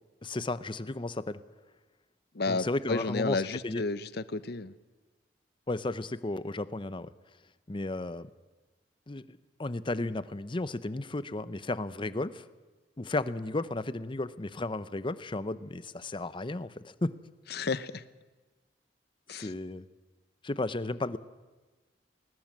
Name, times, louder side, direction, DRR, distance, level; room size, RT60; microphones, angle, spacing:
voice 1, 0.2-1.4 2.5-3.8 5.7-7.1 7.7-8.3 9.1-12.4 13.0-17.1 19.4-19.9 20.4-21.2, left 2 dB, 30° left, 15 dB, 0.7 m, -34 dB
voice 2, 2.4-4.7 17.5-18.0 19.3-19.5, left 3 dB, 65° left, 15 dB, 0.8 m, -32 dB
20.0 x 19.5 x 7.4 m, 1.2 s
head